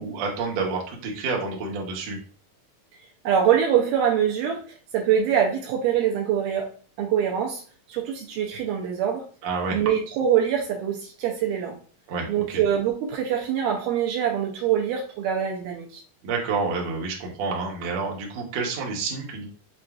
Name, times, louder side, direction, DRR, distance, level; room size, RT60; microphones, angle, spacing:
voice 1, 0.0-2.2 9.4-9.8 12.1-12.6 16.2-19.5, right 4 dB, 65° right, -1 dB, 1.8 m, -29 dB
voice 2, 3.2-4.6 4.9-6.7 7.0-7.6 7.9-9.2 9.7-11.8 12.3-16.0, right 9 dB, 80° right, 0 dB, 2.1 m, -24 dB
6.6 x 2.4 x 2.4 m, 0.40 s
omnidirectional pair, 3.9 m